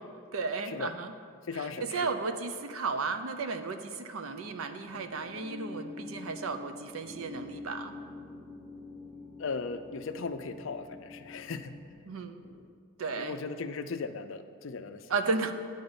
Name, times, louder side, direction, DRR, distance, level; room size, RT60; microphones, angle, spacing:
voice 1, 0.3-1.1 1.5-7.9 12.1-12.4 13.0-13.4 15.1-15.5, right 4 dB, 85° right, 8 dB, 0.6 m, -34 dB
voice 2, 1.5-2.1 9.4-11.8 12.1-12.7 13.1-15.1, left 4 dB, 70° left, 10 dB, 0.5 m, -38 dB
sound 1, 4.8-11.9, left 3 dB, 30° right, 1.5 m, -46 dB
9.2 x 5.5 x 6.8 m, 2.1 s
head